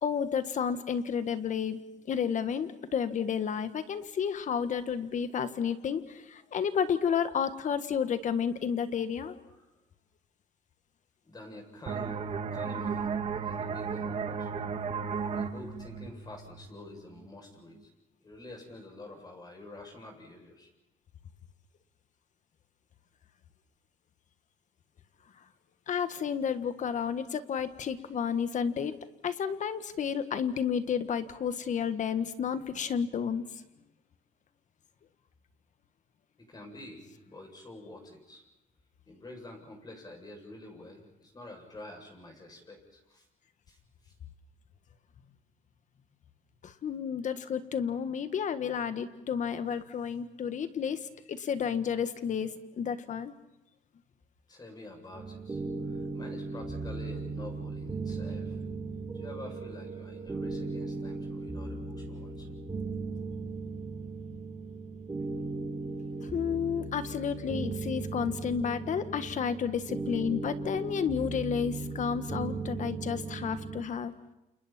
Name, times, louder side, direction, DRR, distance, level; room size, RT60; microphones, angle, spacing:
voice 1, 0.0-9.4 25.9-28.9 29.2-33.4 46.6-53.3 66.2-74.1, left 7 dB, 45° left, 11 dB, 1.7 m, -31 dB
voice 2, 11.2-12.2 12.5-14.5 15.3-17.9 18.2-20.7 36.4-38.4 39.1-43.3 43.7-44.1 54.5-58.6 59.1-62.6, left 2 dB, 25° left, 2 dB, 7.5 m, -48 dB
sound 1, 11.9-17.2, right 6 dB, 40° right, 1.5 m, -35 dB
sound 2, 55.1-73.8, right 3 dB, 20° right, 3.9 m, -37 dB
29.0 x 29.0 x 4.5 m, 0.93 s
cardioid pair, 110°, 17 cm